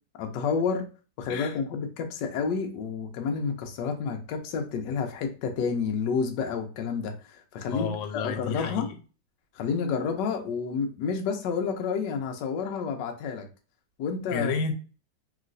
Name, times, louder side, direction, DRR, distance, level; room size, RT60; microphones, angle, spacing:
voice 1, 0.2-0.9 1.2-8.9 9.5-13.5 14.0-14.5, left 5 dB, 70° left, 4 dB, 1.2 m, -30 dB
voice 2, 7.7-9.0 14.3-14.7, left 5 dB, 90° left, 6 dB, 1.4 m, -31 dB
3.1 x 3.0 x 2.5 m, 0.36 s
omnidirectional pair, 2.0 m